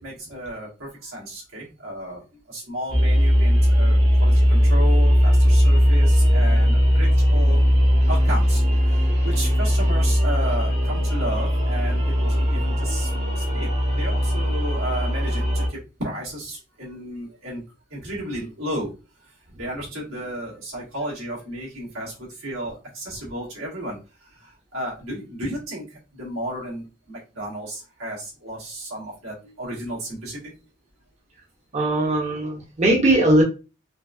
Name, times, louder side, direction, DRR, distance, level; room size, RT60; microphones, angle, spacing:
voice 1, 0.0-7.6 7.9-13.7 14.0-17.6 17.9-18.9 19.2-30.4, right 1 dB, 85° right, -5 dB, 1.8 m, -33 dB
sound 1, 2.9-15.7, equal, 65° right, 1.5 m, -19 dB
voice 2, 31.7-33.4, right 1 dB, 35° right, -1 dB, 0.8 m, -19 dB
4.5 x 2.3 x 2.5 m, 0.31 s
head